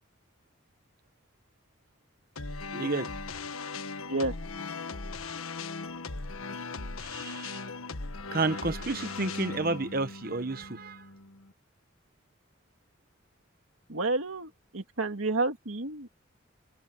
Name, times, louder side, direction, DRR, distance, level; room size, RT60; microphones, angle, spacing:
sound 1, 2.4-11.5, left 3 dB, 90° left, 1.5 m, -38 dB
voice 1, 2.7-3.1 7.0-7.6 8.3-11.0, right 3 dB, 45° right, 1.0 m, -31 dB
voice 2, 13.9-16.1, right 2 dB, 80° right, 2.3 m, -30 dB
head